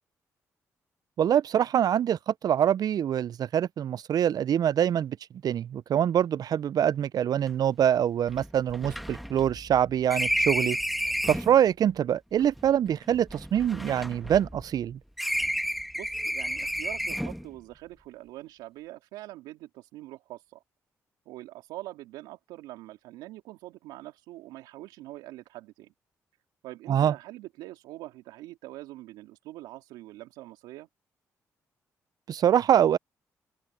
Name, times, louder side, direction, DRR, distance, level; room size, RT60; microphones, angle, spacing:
voice 1, 1.2-5.2 5.4-10.8 11.3-15.0 26.9-27.1 32.3-33.0, right 9 dB, 60° right, 0.5 m, -24 dB
sound 1, 7.5-7.6 7.8-7.9 8.3-11.6 12.4-14.8 15.2-17.5, equal, ahead, 2.3 m, -31 dB
voice 2, 15.6-20.6 21.3-25.9 26.6-30.9, right 17 dB, 85° right, 3.0 m, -44 dB
open air
hypercardioid pair, 50°, 8 cm